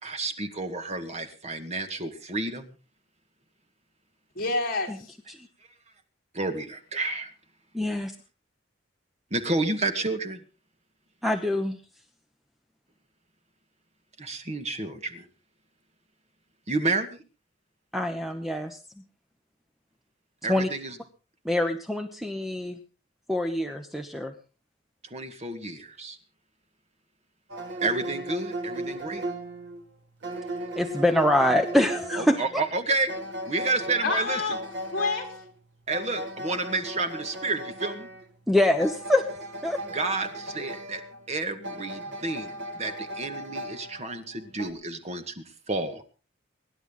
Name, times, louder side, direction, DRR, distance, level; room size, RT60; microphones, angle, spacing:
voice 1, 0.0-2.7 6.3-7.3 9.3-10.4 14.2-15.3 16.7-17.2 20.4-21.0 25.1-26.2 27.8-29.2 32.2-33.1 33.5-34.4 35.9-38.1 39.9-41.0 41.3-46.0, right 3 dB, 35° right, 1.9 m, -30 dB
voice 2, 4.4-5.1 34.0-34.6 34.9-35.3, left 3 dB, 50° left, 4.3 m, -28 dB
voice 3, 7.7-8.1 11.2-11.8 17.9-18.8 20.5-20.7 21.4-22.8 23.3-24.3 30.8-32.4 38.5-39.2 39.6-39.8, left 1 dB, ahead, 1.1 m, -24 dB
sound 1, 27.5-44.7, right 1 dB, 65° right, 2.7 m, -37 dB
24.5 x 11.0 x 3.9 m
head